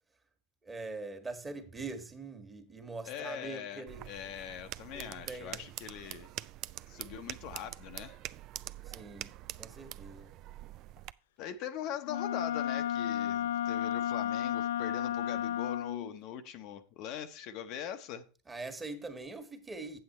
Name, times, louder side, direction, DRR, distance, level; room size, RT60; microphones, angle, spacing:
voice 1, 0.6-4.1 4.9-5.7 8.8-9.3 9.6-10.3 18.5-20.0, right 3 dB, 15° right, 1.5 m, -43 dB
voice 2, 3.1-6.3 6.9-8.2 11.4-18.2, left 9 dB, 55° left, 0.7 m, -42 dB
sound 1, 3.9-11.1, right 14 dB, 50° right, 0.4 m, -45 dB
Wind instrument woodwind instrument, 12.1-16.1, left 10 dB, 75° left, 0.3 m, -33 dB
7.9 x 7.8 x 4.2 m
hypercardioid pair, 105°, 0 cm